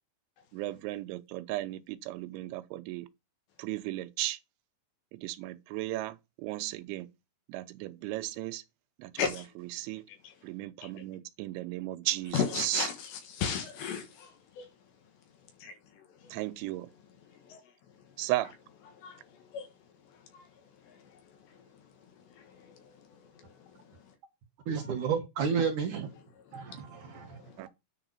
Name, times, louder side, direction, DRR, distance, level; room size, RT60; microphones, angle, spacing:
voice 1, 0.5-3.1 3.6-4.4 5.1-7.1 7.5-8.6 9.0-9.2 9.8-10.0 10.4-12.9 16.3-16.9 18.2-18.5 27.6-27.7, right 17 dB, 85° right, 3.1 m, -35 dB
voice 2, 9.2-9.5 10.1-10.5 10.8-11.0 12.3-16.4 16.9-18.3 18.9-24.2 26.3-27.7, left 7 dB, 70° left, 3.7 m, -39 dB
voice 3, 24.7-26.1 26.5-27.4, right 6 dB, 70° right, 2.0 m, -31 dB
10.0 x 4.9 x 5.7 m
omnidirectional pair, 5.3 m